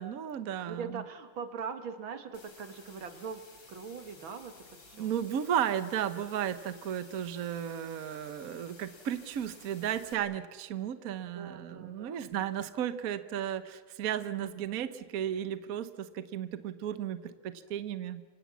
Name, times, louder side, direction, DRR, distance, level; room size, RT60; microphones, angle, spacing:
voice 1, 0.0-1.0 5.0-18.2, right 10 dB, 55° right, 12 dB, 1.2 m, -34 dB
voice 2, 0.7-3.4 3.7-5.1 11.2-12.2, right 6 dB, 80° right, 9 dB, 2.5 m, -41 dB
sound 1, 2.3-10.1, left 3 dB, 70° left, 4.1 m, -55 dB
28.0 x 24.0 x 7.2 m, 1.5 s
omnidirectional pair, 2.2 m